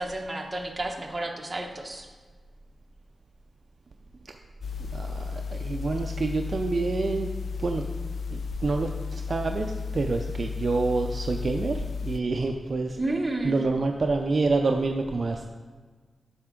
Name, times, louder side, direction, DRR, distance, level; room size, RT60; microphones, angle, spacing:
voice 1, 0.0-2.1 13.0-13.6, right 2 dB, 25° right, 2 dB, 1.0 m, -31 dB
sound 1, 4.6-12.2, left 5 dB, 65° left, 0.4 m, -34 dB
voice 2, 4.9-7.3 7.6-7.8 8.3-13.0 13.4-15.5, right 3 dB, 50° right, 3 dB, 0.4 m, -27 dB
7.8 x 5.8 x 3.7 m, 1.5 s
wide cardioid pair, 85°, 0 cm